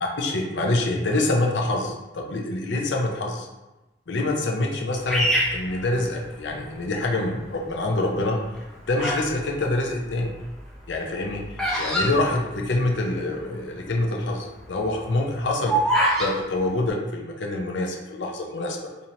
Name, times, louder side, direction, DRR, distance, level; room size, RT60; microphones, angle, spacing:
voice 1, 0.2-3.5 4.1-8.4 8.9-10.3 10.9-19.1, left 2 dB, 80° left, 1 dB, 0.6 m, -26 dB
Bird vocalization bird call bird song, 5.1-6.6 7.2-7.7 8.4-9.3 9.6-13.1 13.4-13.5 13.6-14.0 14.4-16.3, right 1 dB, 5° left, 0.6 m, -25 dB
4.4 x 2.7 x 2.7 m, 1.0 s
head